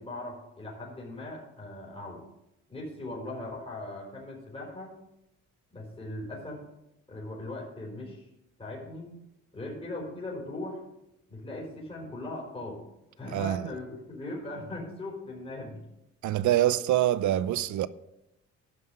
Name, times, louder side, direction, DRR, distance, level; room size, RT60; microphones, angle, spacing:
voice 1, 0.0-2.2 2.7-4.9 5.7-6.6 7.1-8.3 8.6-9.2 9.5-10.8 11.3-12.8 13.2-15.8, left 2 dB, 20° left, 4.8 m, -39 dB
voice 2, 13.3-13.6 16.2-17.9, right 13 dB, 70° right, 0.6 m, -25 dB
12.0 x 5.6 x 8.0 m
cardioid pair, 90°, 30 cm